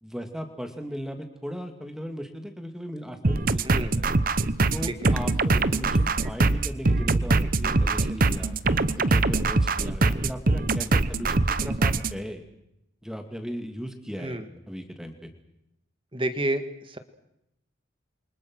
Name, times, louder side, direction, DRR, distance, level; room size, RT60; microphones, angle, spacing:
voice 1, 0.0-4.1 4.7-8.5 9.0-12.4 13.0-14.4 14.7-15.3, equal, 5° right, 6 dB, 2.5 m, -37 dB
sound 1, 3.2-12.2, right 3 dB, 45° right, 0.9 m, -23 dB
voice 2, 3.6-4.0 4.9-5.2 14.2-14.5 16.1-17.0, right 1 dB, 25° right, 9 dB, 1.7 m, -30 dB
28.5 x 25.0 x 6.4 m, 0.82 s
head